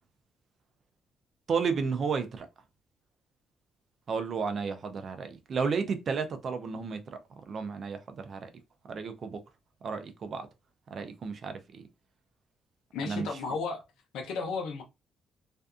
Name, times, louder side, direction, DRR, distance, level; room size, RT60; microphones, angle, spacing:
voice 1, 1.5-2.5 4.1-7.2 7.5-8.5 8.9-9.4 9.8-10.5 10.9-11.8 13.0-13.3, right 5 dB, 50° right, 0.5 m, -32 dB
voice 2, 12.9-13.8 14.1-14.8, left 4 dB, 85° left, 0.6 m, -33 dB
2.6 x 2.2 x 2.4 m
cardioid pair, 90°, 0 cm